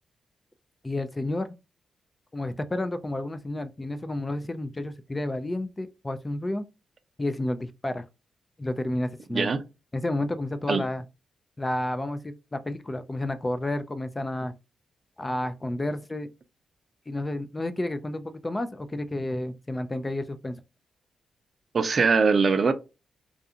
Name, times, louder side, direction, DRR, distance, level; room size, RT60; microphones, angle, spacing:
voice 1, 0.8-1.5 2.3-6.6 7.2-8.1 8.6-9.5 9.9-11.0 11.6-14.5 15.2-16.3 17.1-20.6, left 1 dB, 25° left, 0.3 m, -31 dB
voice 2, 9.3-9.6 10.7-10.8 21.7-22.7, right 4 dB, 50° right, 0.4 m, -22 dB
2.4 x 2.3 x 2.7 m
cardioid pair, 55°, 0 cm